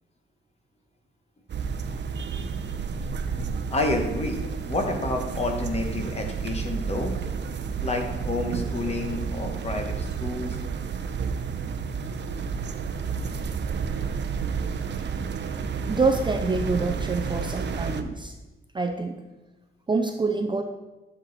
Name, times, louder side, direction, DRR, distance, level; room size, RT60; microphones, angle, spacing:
sound 1, 1.5-18.0, right 6 dB, 55° right, 0.7 m, -31 dB
voice 1, 3.7-4.4 4.7-7.1 7.8-10.6, left 2 dB, 30° left, 3 dB, 1.2 m, -29 dB
voice 2, 15.9-18.4 18.7-19.2 19.9-20.6, right 3 dB, 20° right, 5 dB, 0.5 m, -26 dB
11.0 x 7.0 x 4.1 m, 1.1 s
wide cardioid pair, 165°, 21 cm